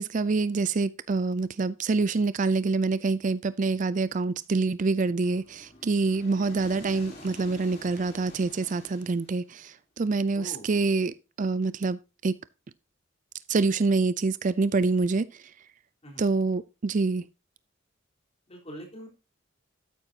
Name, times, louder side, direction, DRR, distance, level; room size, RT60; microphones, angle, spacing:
voice 1, 0.0-12.4 13.5-15.4 16.2-17.2, right 3 dB, 40° right, 0.4 m, -26 dB
sound 1, 5.2-9.6, left 1 dB, 50° left, 4.3 m, -48 dB
voice 2, 10.3-10.7 16.0-16.3 18.5-19.1, equal, 30° left, 4.0 m, -43 dB
12.5 x 9.1 x 2.8 m
head